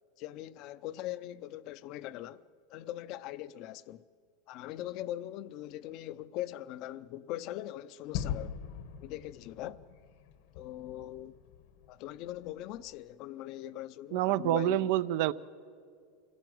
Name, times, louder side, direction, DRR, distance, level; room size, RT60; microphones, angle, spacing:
voice 1, 0.2-2.4 2.7-4.0 4.5-8.6 9.0-9.8 10.6-11.4 11.9-14.9, left 13 dB, 50° left, 0.6 m, -41 dB
Gunshot gunfire / Fireworks / Boom, 8.1-12.9, left 8 dB, 70° left, 1.3 m, -42 dB
voice 2, 14.1-15.3, right 14 dB, 65° right, 0.6 m, -27 dB
26.5 x 17.0 x 7.8 m
supercardioid pair, 130°, 0 cm